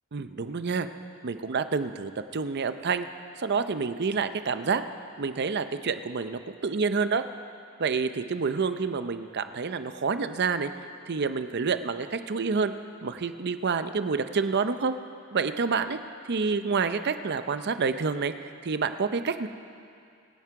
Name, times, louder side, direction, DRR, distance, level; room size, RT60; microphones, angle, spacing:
voice 1, 0.1-0.9 1.2-3.1 3.4-4.8 5.2-7.2 7.8-10.7 11.1-12.7 13.0-14.9 15.3-16.0 16.3-18.3 18.6-19.5, right 5 dB, 50° right, 10 dB, 0.6 m, -28 dB
24.5 x 9.7 x 4.7 m, 2.5 s
head